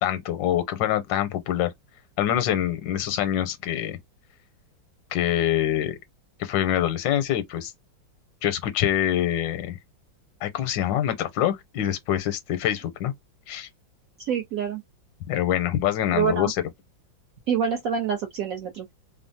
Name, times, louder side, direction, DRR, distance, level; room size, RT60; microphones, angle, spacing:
voice 1, 0.0-1.7 2.2-4.0 5.1-6.0 6.4-7.7 8.4-9.8 10.4-13.1 13.5-13.7 15.3-16.6, left 11 dB, 80° left, 1.3 m, -25 dB
voice 2, 14.2-14.8 16.1-16.5 17.5-18.9, right 7 dB, 70° right, 0.8 m, -26 dB
3.2 x 2.0 x 2.6 m
omnidirectional pair, 2.0 m